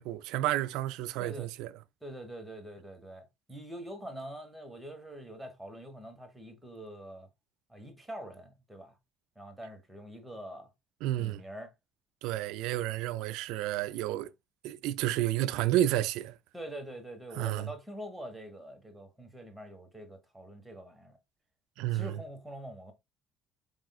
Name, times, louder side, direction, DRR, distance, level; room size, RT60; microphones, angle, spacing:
voice 1, 0.0-1.7 11.0-11.4 12.2-14.3 14.6-16.4 17.4-17.7 21.8-22.1, right 14 dB, 80° right, 0.3 m, -31 dB
voice 2, 2.0-7.3 7.7-8.9 9.3-10.7 11.2-11.7 16.5-21.2 21.9-22.9, right 1 dB, 10° right, 1.4 m, -44 dB
4.8 x 3.7 x 2.3 m
supercardioid pair, 90°, 0 cm